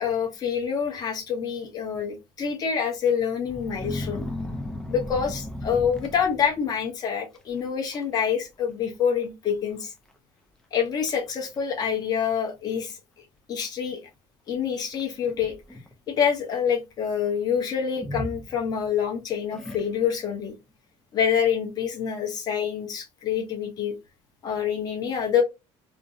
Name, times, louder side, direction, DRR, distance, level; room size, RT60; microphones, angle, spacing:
voice 1, 0.0-4.3 4.9-9.9 10.7-13.0 13.5-14.0 14.5-15.5 16.1-20.5 21.1-23.9 24.4-25.4, left 7 dB, 30° left, 0.8 m, -26 dB
sound 1, 3.4-6.7 7.4-7.6 7.9-8.4 8.6-8.7 9.5-9.6 10.1-10.2 10.7-11.2 12.0-12.1 14.9-15.9 18.0-19.0 19.5-20.3, left 1 dB, 5° left, 0.3 m, -36 dB
2.5 x 2.0 x 2.5 m
cardioid pair, 155°, 12 cm